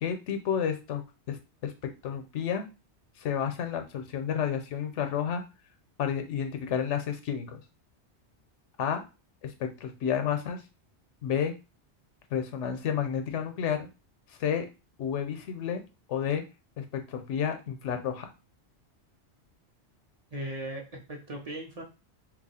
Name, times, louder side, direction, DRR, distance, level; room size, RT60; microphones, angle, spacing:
voice 1, 0.0-1.0 1.3-1.4 1.6-2.6 3.2-5.4 6.0-7.6 8.8-9.0 9.4-10.6 11.2-11.5 12.3-13.9 14.4-14.7 15.0-15.8 16.1-16.4 16.8-18.3, left 8 dB, 90° left, 7 dB, 1.0 m, -31 dB
voice 2, 20.3-21.8, right 1 dB, 40° right, 0 dB, 0.7 m, -38 dB
2.9 x 2.4 x 4.1 m, 0.30 s
omnidirectional pair, 1.2 m